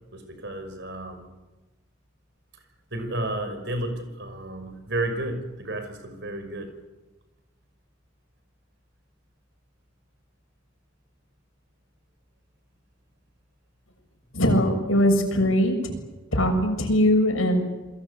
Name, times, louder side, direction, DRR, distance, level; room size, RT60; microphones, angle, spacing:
voice 1, 0.1-1.3 2.9-6.7, right 1 dB, 60° right, 7 dB, 5.8 m, -32 dB
voice 2, 14.3-15.9 16.3-17.7, equal, 85° left, 4 dB, 6.8 m, -21 dB
29.0 x 22.0 x 8.4 m, 1.1 s
head